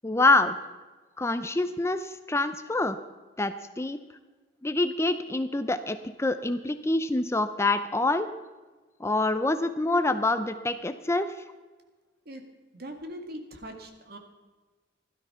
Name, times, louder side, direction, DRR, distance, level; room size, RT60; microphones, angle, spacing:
voice 1, 0.0-0.6 1.2-3.0 3.4-4.0 4.6-8.3 9.0-11.3, left 2 dB, 15° left, 10 dB, 0.6 m, -26 dB
voice 2, 12.7-14.2, equal, 55° right, 5 dB, 2.1 m, -41 dB
16.0 x 12.5 x 5.7 m, 1.3 s
head